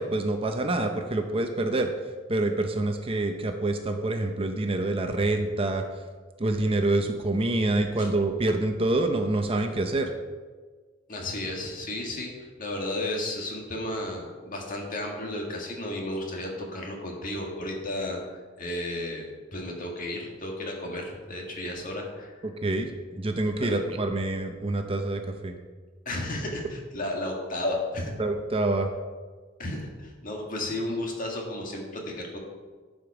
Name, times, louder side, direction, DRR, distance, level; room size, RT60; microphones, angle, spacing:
voice 1, 0.0-1.9 2.3-5.8 6.4-10.1 22.4-25.5 28.2-28.9, right 2 dB, 30° right, 5 dB, 0.6 m, -26 dB
voice 2, 11.1-12.3 12.6-22.5 23.6-23.8 26.0-28.1 29.6-32.4, left 1 dB, 45° left, 0 dB, 1.7 m, -33 dB
11.0 x 5.1 x 4.8 m, 1.4 s
head